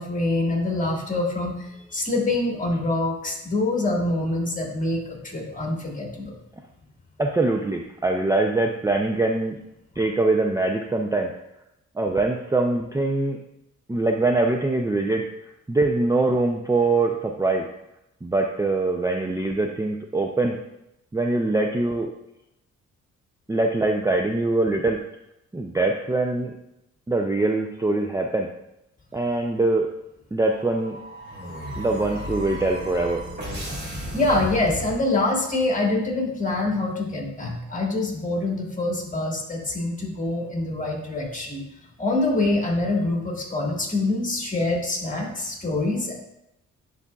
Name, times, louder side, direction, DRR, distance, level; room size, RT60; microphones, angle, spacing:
voice 1, 0.0-1.5 1.9-6.4 34.1-41.6 42.0-46.1, left 2 dB, 25° left, 0 dB, 1.8 m, -25 dB
voice 2, 7.2-9.6 10.0-11.3 12.0-13.4 13.9-15.2 15.7-17.6 18.2-20.6 21.1-22.1 23.5-25.0 25.5-26.5 27.1-28.5 29.1-29.9 30.3-31.0 31.8-33.2, right 2 dB, 10° right, 2 dB, 0.5 m, -23 dB
sound 1, 30.5-35.5, equal, 35° right, 2.3 m, -34 dB
9.9 x 4.0 x 2.3 m, 0.85 s
cardioid pair, 85°, 30 cm